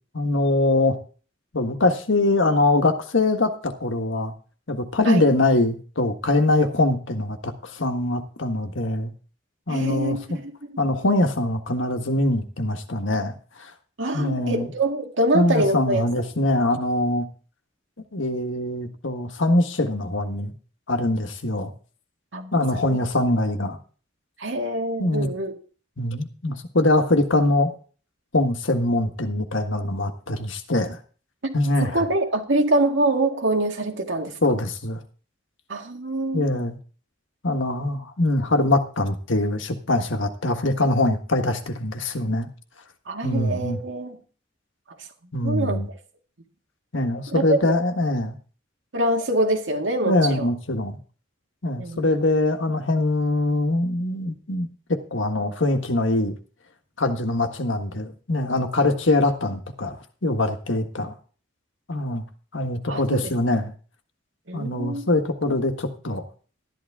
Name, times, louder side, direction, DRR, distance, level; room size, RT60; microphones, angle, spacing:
voice 1, 0.1-1.0 1.5-4.3 4.7-9.1 9.7-10.4 10.8-13.3 13.6-13.7 14.1-14.7 15.3-17.3 18.1-20.5 20.9-21.7 22.5-23.8 25.0-25.3 26.0-27.7 28.3-31.0 31.5-32.1 34.4-35.0 36.3-36.8 37.4-42.5 43.2-43.8 45.3-45.9 46.9-48.3 50.0-51.0 51.6-56.4 57.0-61.1 61.9-62.2 62.5-63.7 64.5-66.2, left 2 dB, 80° left, 6 dB, 1.6 m, -23 dB
voice 2, 9.7-10.7 14.0-16.1 22.3-23.0 24.4-25.5 31.4-31.6 31.8-34.4 35.7-36.6 43.1-44.2 45.4-45.8 47.3-47.8 48.9-50.5 51.8-52.1 62.9-63.3 64.5-65.1 65.5-65.6, right 1 dB, 75° right, 3 dB, 2.1 m, -25 dB
13.0 x 11.0 x 3.6 m, 0.40 s
head